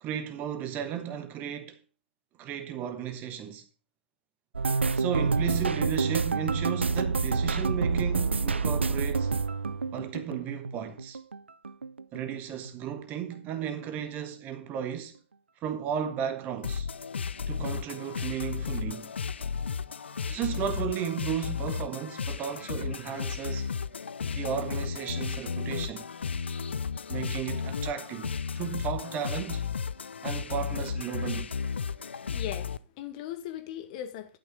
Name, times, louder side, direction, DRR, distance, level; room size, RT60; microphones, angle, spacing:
voice 1, 0.0-1.8 2.4-3.6 4.9-9.3 9.9-11.2 12.1-15.2 15.6-16.9 17.5-19.1 20.2-23.7 24.3-26.1 27.1-29.7 30.2-31.5, right 9 dB, 30° right, 1.2 m, -34 dB
sound 1, 4.5-11.4 11.6-12.7 13.0-13.3 13.6-13.8, right 4 dB, 85° right, 0.6 m, -28 dB
sound 2, 16.6-32.8, left 6 dB, 75° left, 0.6 m, -34 dB
voice 2, 32.0-34.4, left 11 dB, 40° left, 1.7 m, -39 dB
11.5 x 6.1 x 5.1 m
figure-of-eight pair, 120°, 6 cm